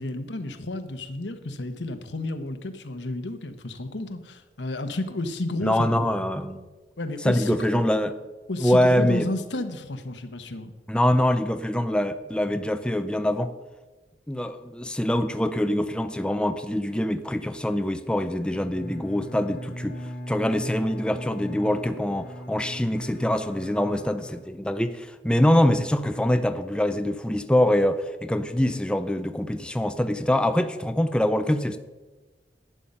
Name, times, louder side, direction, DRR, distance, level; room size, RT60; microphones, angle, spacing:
voice 1, 0.0-5.9 7.0-7.9 8.5-10.7, left 2 dB, 85° left, 1.0 m, -32 dB
voice 2, 5.6-6.6 7.2-8.2 8.6-9.3 10.9-13.5 14.3-20.0 20.3-31.8, left 1 dB, 5° left, 0.4 m, -24 dB
Bowed string instrument, 18.4-25.0, equal, 65° left, 1.4 m, -38 dB
11.0 x 9.2 x 5.5 m
head